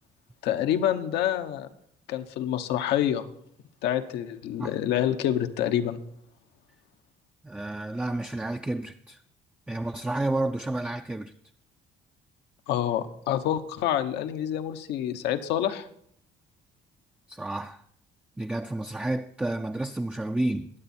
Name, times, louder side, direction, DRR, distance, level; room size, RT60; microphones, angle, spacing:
voice 1, 0.4-1.7 2.1-3.3 3.8-6.0 12.7-15.9, left 11 dB, 85° left, 1.1 m, -27 dB
voice 2, 7.4-9.2 9.7-11.3 17.3-17.8 18.4-20.7, right 2 dB, 5° right, 0.5 m, -30 dB
21.5 x 8.2 x 4.4 m
cardioid pair, 110°, 17 cm